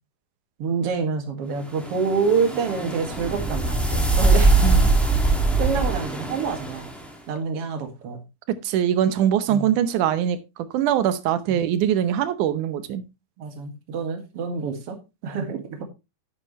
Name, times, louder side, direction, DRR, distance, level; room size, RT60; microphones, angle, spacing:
voice 1, 0.6-4.5 5.6-6.9 7.3-8.2 9.5-9.7 11.5-11.6 13.4-15.0 15.2-15.8, right 5 dB, 50° right, 4 dB, 2.7 m, -27 dB
sound 1, 1.7-7.0, right 3 dB, ahead, 1.2 m, -21 dB
voice 2, 8.5-10.4 10.7-13.0, right 10 dB, 80° right, 12 dB, 2.4 m, -22 dB
9.8 x 9.0 x 3.1 m, 0.25 s
omnidirectional pair, 3.5 m